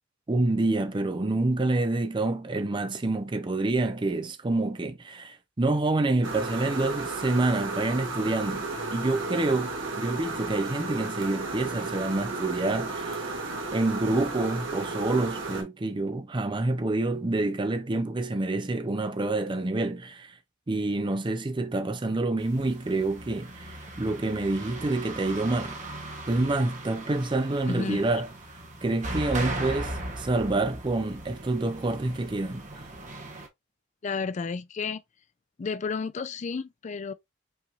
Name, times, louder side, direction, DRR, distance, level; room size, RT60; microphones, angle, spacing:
voice 1, 0.3-8.7 8.9-13.3 13.7-20.4 20.7-25.8 26.3-28.3 28.8-32.7, right 2 dB, 25° right, 0.5 m, -27 dB
sound 1, 6.2-15.6, right 3 dB, 75° right, 1.4 m, -34 dB
sound 2, 22.4-33.5, right 2 dB, 40° right, 1.0 m, -38 dB
voice 2, 27.7-28.0 34.0-35.0 35.6-37.1, left 4 dB, 35° left, 0.4 m, -32 dB
5.5 x 3.0 x 2.4 m
head